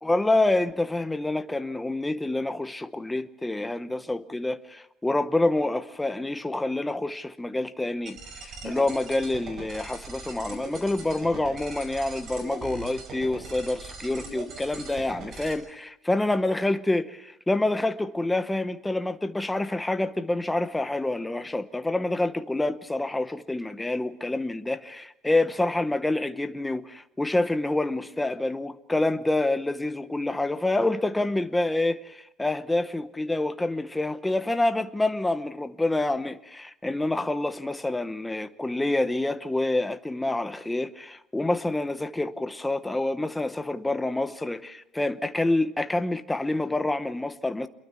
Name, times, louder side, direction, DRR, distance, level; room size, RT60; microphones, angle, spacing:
voice 1, 0.0-47.7, left 2 dB, 5° left, 0.9 m, -27 dB
sound 1, 8.1-15.5, right 3 dB, 40° right, 5.6 m, -41 dB
28.5 x 22.5 x 4.4 m
cardioid pair, 170°, 0 cm